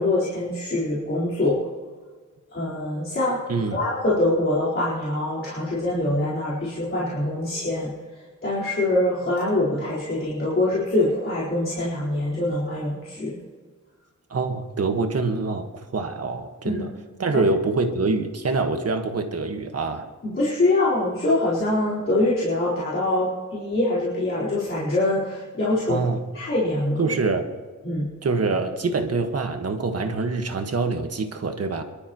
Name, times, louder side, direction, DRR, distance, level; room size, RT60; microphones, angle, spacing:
voice 1, 0.0-1.6 2.5-3.4 3.7-7.9 8.4-13.4 16.6-16.8 20.2-26.0 26.3-27.1 27.8-28.1, left 2 dB, 45° left, -9 dB, 4.3 m, -24 dB
voice 2, 14.3-16.9 17.2-20.1 25.9-26.2 27.0-27.5 28.2-31.8, right 3 dB, 55° right, 5 dB, 1.6 m, -25 dB
26.0 x 12.5 x 3.1 m, 1.4 s
wide cardioid pair, 165°, 29 cm